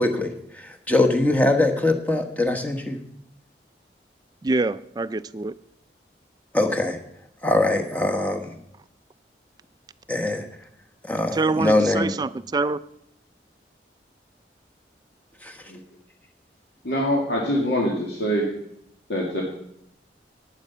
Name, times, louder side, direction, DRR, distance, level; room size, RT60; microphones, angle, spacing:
voice 1, 0.0-3.0 6.5-7.0 7.4-8.5 10.1-10.4 11.0-12.1 15.4-15.6, left 2 dB, 10° left, 1.1 m, -22 dB
voice 2, 4.4-5.5 11.3-12.8, right 3 dB, 20° right, 0.3 m, -25 dB
voice 3, 16.8-18.5 19.1-19.4, equal, 75° left, 2.0 m, -24 dB
11.5 x 9.1 x 5.6 m
head